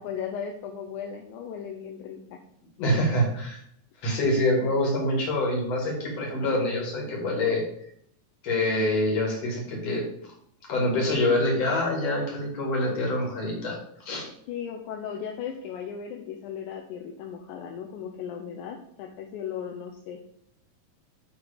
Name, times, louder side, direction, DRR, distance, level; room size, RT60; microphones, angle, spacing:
voice 1, 0.0-2.4 14.5-20.2, left 8 dB, 75° left, 2 dB, 1.9 m, -36 dB
voice 2, 2.8-3.6 4.0-7.6 8.4-10.0 10.7-13.8 14.1-14.3, left 1 dB, 50° left, -1 dB, 3.0 m, -25 dB
9.1 x 3.7 x 5.0 m, 0.68 s
omnidirectional pair, 4.0 m